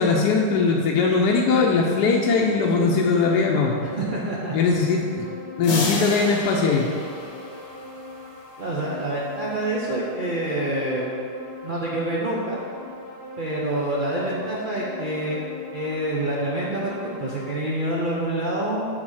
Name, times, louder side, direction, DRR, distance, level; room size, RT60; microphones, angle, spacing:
voice 1, 0.0-3.7 4.5-5.3 5.6-6.9, left 4 dB, 70° left, -1 dB, 1.1 m, -20 dB
sound 1, 1.2-17.5, left 2 dB, 20° left, 0.4 m, -40 dB
voice 2, 3.8-4.6 8.6-11.1 11.6-12.6 13.4-15.4 15.7-18.9, right 1 dB, 60° right, -5 dB, 0.5 m, -27 dB
sound 2, 5.6-8.1, left 2 dB, 45° left, 1.0 m, -31 dB
6.1 x 4.0 x 6.3 m, 2.4 s
omnidirectional pair, 1.9 m